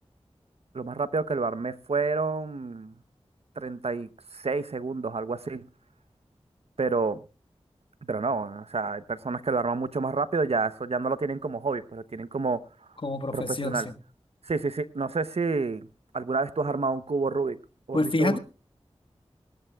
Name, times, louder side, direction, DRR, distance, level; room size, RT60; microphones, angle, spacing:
voice 1, 0.7-2.9 3.6-5.7 6.8-7.2 8.0-12.6 13.3-13.9 14.4-15.9 16.1-17.6 17.9-18.4, right 4 dB, 70° right, 14 dB, 0.8 m, -29 dB
voice 2, 13.0-14.0 17.9-18.4, left 2 dB, 50° left, 10 dB, 1.3 m, -27 dB
19.0 x 19.0 x 2.3 m, 0.32 s
wide cardioid pair, 55°, 11 cm